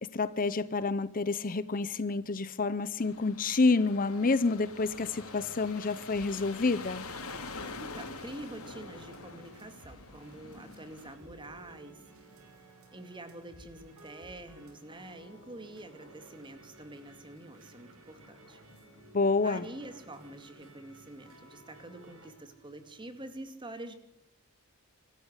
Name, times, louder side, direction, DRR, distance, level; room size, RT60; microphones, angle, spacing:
voice 1, 0.0-7.1 19.1-19.6, left 3 dB, 40° left, 0.7 m, -28 dB
sound 1, 3.0-11.2, left 3 dB, 75° left, 3.6 m, -45 dB
sound 2, 4.7-23.4, right 2 dB, 70° right, 5.3 m, -55 dB
voice 2, 7.8-12.3 12.9-18.6 19.4-24.0, right 1 dB, 20° right, 2.5 m, -46 dB
25.0 x 13.5 x 8.2 m
head